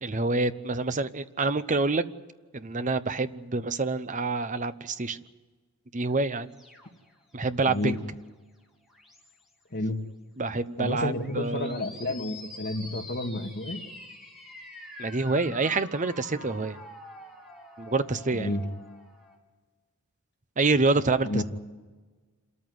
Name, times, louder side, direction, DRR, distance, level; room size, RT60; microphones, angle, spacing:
voice 1, 0.0-2.0 2.5-5.2 5.9-6.5 7.3-8.0 10.4-11.7 15.0-16.8 17.8-18.6 20.6-21.4, right 3 dB, 35° right, 13 dB, 0.8 m, -27 dB
sound 1, 6.1-8.3 8.8-9.5 11.1-19.4, left 2 dB, ahead, 3.6 m, -46 dB
voice 2, 7.7-8.0 9.7-10.0 10.8-13.8 18.3-18.6 21.2-21.4, left 2 dB, 50° left, 3 dB, 2.1 m, -30 dB
27.0 x 14.0 x 9.5 m, 1.3 s
head